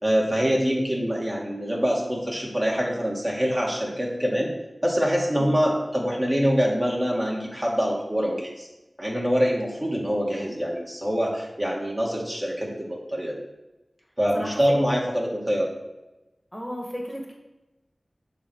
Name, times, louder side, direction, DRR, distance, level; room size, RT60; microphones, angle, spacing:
voice 1, 0.0-4.5 4.8-8.7 9.0-13.4 14.2-15.7, equal, 25° right, -2 dB, 2.2 m, -25 dB
voice 2, 16.5-17.3, equal, ahead, 0 dB, 1.9 m, -34 dB
8.2 x 4.4 x 6.3 m, 1.0 s
wide cardioid pair, 60°, 0 cm